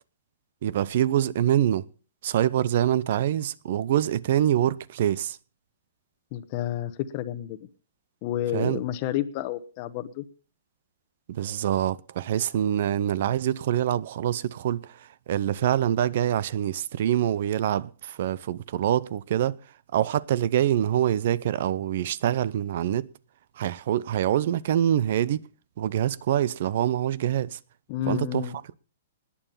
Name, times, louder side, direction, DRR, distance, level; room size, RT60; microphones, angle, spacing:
voice 1, 0.6-1.8 2.2-5.4 8.5-8.8 11.3-19.6 19.9-23.1 23.6-25.4 25.8-27.6 28.1-28.5, right 11 dB, 55° right, 0.7 m, -25 dB
voice 2, 6.3-7.6 8.2-10.2 27.9-28.5, left 12 dB, 40° left, 1.0 m, -30 dB
20.0 x 7.1 x 5.7 m
hypercardioid pair, 155°, 0 cm